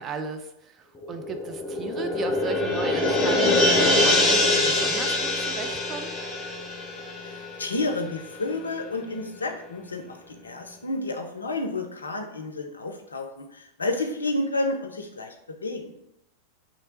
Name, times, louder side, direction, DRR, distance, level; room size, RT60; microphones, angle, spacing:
voice 1, 0.0-6.1, right 5 dB, 25° right, 6 dB, 0.4 m, -35 dB
sound 1, 1.0-8.0 8.3-8.4, left 2 dB, 20° left, 0.8 m, -24 dB
voice 2, 7.2-15.9, left 2 dB, 75° left, 5 dB, 0.5 m, -31 dB
3.2 x 2.8 x 4.1 m, 0.81 s
figure-of-eight pair, 90°, 0 cm